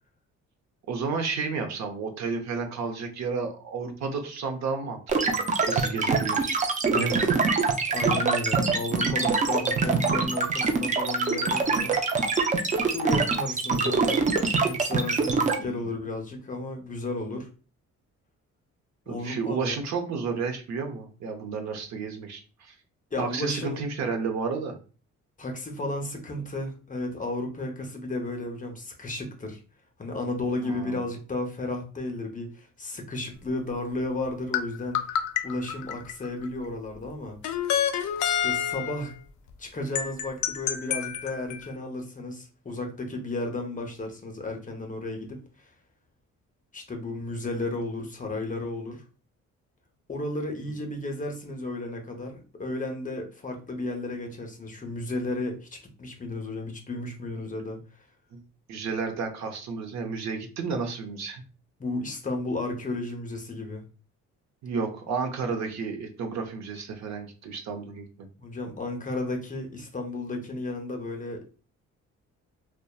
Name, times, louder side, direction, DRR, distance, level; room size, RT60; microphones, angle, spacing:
voice 1, 0.9-5.4 5.7-6.6 6.9-7.3 9.0-9.3 9.6-9.7 13.8-14.3 15.6-15.9 19.1-22.7 23.2-24.8 30.6-31.0 58.3-58.4 58.7-61.4 64.6-68.1, right 5 dB, 65° right, 5 dB, 0.7 m, -32 dB
sound 1, 5.1-15.6, right 4 dB, 25° right, 0.4 m, -24 dB
voice 2, 6.9-7.3 7.9-12.0 12.9-14.3 14.6-17.5 19.1-19.8 23.1-23.8 25.4-29.6 30.0-37.4 37.6-37.9 38.3-39.1 39.6-45.7 46.7-49.0 50.1-55.7 56.0-57.8 61.8-63.8 68.4-71.4, left 2 dB, 25° left, 3 dB, 0.7 m, -33 dB
sound 2, 34.5-36.5 37.4-39.1 40.0-41.7, left 9 dB, 70° left, 0.4 m, -28 dB
2.8 x 2.1 x 2.2 m, 0.36 s
cardioid pair, 90°, 30 cm